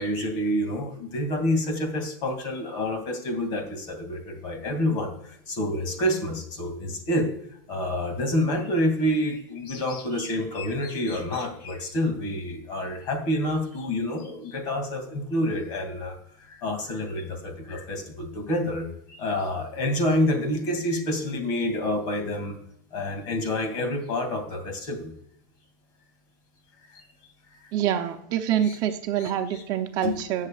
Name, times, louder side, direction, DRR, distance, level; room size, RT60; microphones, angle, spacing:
voice 1, 0.0-7.3 7.7-16.2 16.5-22.6 22.9-25.1 26.9-27.0 28.6-28.8 29.2-29.6 30.0-30.2, left 1 dB, 45° left, 5 dB, 2.6 m, -28 dB
voice 2, 27.7-30.5, right 10 dB, 40° right, 6 dB, 0.8 m, -26 dB
17.0 x 6.6 x 2.5 m, 0.71 s
supercardioid pair, 150°, 10 cm